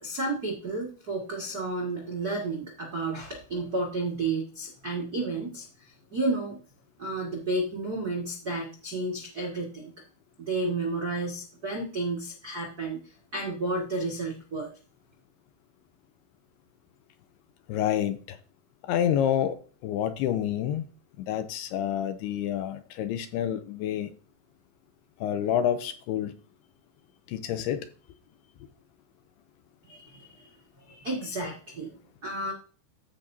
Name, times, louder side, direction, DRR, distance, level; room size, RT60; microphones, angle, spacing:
voice 1, 0.0-5.6 6.1-6.6 7.0-9.9 10.4-13.0 13.3-14.7 29.8-30.5 30.9-31.9 32.2-32.5, right 2 dB, 90° right, 0.8 m, -31 dB
voice 2, 17.7-18.4 18.9-19.6 19.8-20.8 21.2-24.1 25.2-26.4 27.3-27.9, left 10 dB, 80° left, 2.5 m, -28 dB
15.0 x 5.7 x 2.7 m
omnidirectional pair, 5.0 m